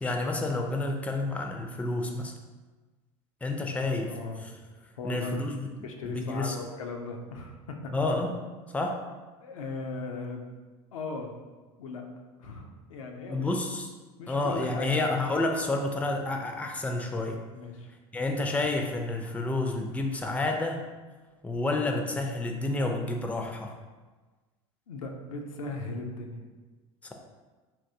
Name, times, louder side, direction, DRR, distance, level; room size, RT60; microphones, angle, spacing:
voice 1, 0.0-2.3 3.4-4.1 4.4-4.5 5.0-5.7 6.0-6.6 7.9-8.3 8.7-9.0 13.3-13.9 14.3-17.4 18.1-20.8 21.4-23.8 27.0-27.1, left 2 dB, 10° left, 3 dB, 0.4 m, -29 dB
voice 2, 4.1-4.5 5.0-5.3 5.7-7.9 9.4-10.5 10.9-11.3 11.8-12.0 12.4-13.5 14.2-15.0 17.5-17.9 24.9-26.4, left 3 dB, 85° left, 2 dB, 0.4 m, -38 dB
3.5 x 2.6 x 2.6 m, 1.3 s
hypercardioid pair, 75°, 17 cm